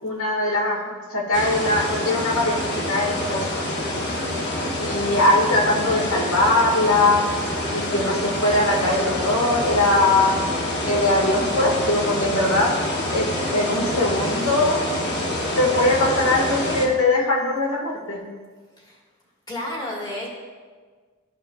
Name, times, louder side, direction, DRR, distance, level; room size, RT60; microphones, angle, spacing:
voice 1, 0.0-3.6 4.8-7.2 7.7-10.4 10.9-12.7 13.1-14.8 15.6-18.2, left 2 dB, 90° left, -2 dB, 1.7 m, -21 dB
sound 1, 1.3-16.9, left 1 dB, 55° left, 1.0 m, -26 dB
voice 2, 19.5-20.3, left 1 dB, 20° left, -4 dB, 1.6 m, -31 dB
12.5 x 5.2 x 2.3 m, 1.5 s
head